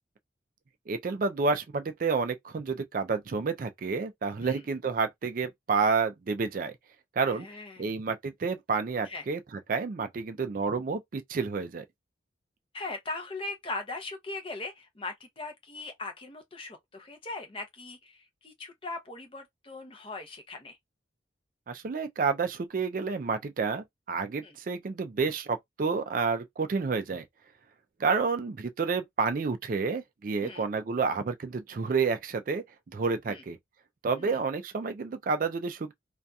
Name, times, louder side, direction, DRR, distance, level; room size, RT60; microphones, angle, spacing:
voice 1, 0.9-6.7 7.2-7.5 7.8-9.4 9.7-11.8 21.7-27.2 28.0-32.6 32.9-33.6 34.0-35.9, right 4 dB, 45° right, 0.3 m, -29 dB
voice 2, 7.2-7.9 9.0-9.2 12.7-20.8 24.4-24.6 30.4-30.6 33.3-33.4 34.2-34.4, left 3 dB, 30° left, 0.6 m, -40 dB
2.7 x 2.3 x 2.2 m
head